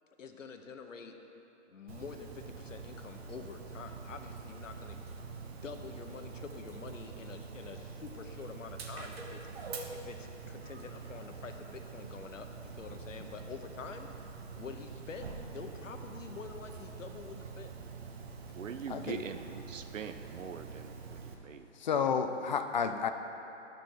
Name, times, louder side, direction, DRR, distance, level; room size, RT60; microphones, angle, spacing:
voice 1, 0.2-1.1 1.7-5.0 5.5-9.4 9.9-12.5 12.8-14.1 14.6-15.3 15.5-17.7, left 5 dB, 80° left, 5 dB, 0.9 m, -46 dB
Dog, 1.9-21.3, right 5 dB, 55° right, 1.0 m, -46 dB
voice 2, 18.6-21.7, right 6 dB, 90° right, 8 dB, 0.7 m, -43 dB
voice 3, 21.8-23.1, left 6 dB, 40° left, 8 dB, 0.4 m, -30 dB
11.0 x 5.1 x 4.6 m, 3.0 s
hypercardioid pair, 150°, 37 cm